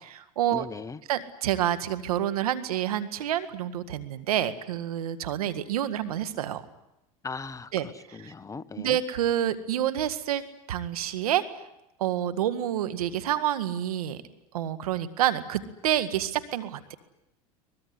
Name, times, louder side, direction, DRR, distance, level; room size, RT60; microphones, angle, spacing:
voice 1, 0.0-0.7 1.1-6.6 7.7-7.9 8.8-11.6 12.0-14.2 14.5-17.0, right 11 dB, 90° right, 12 dB, 1.9 m, -28 dB
voice 2, 0.5-1.0 7.2-7.7 8.1-9.0, left 4 dB, 15° left, 14 dB, 1.0 m, -38 dB
23.5 x 20.5 x 9.7 m, 0.88 s
supercardioid pair, 105°, 18 cm